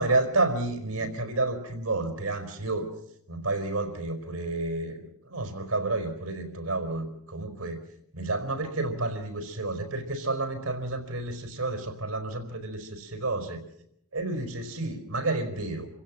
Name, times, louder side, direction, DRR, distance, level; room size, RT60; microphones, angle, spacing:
voice 1, 0.0-2.9 3.3-7.8 8.1-13.6 14.1-15.9, right 2 dB, 70° right, 8 dB, 4.6 m, -30 dB
28.5 x 16.5 x 7.4 m, 0.75 s
head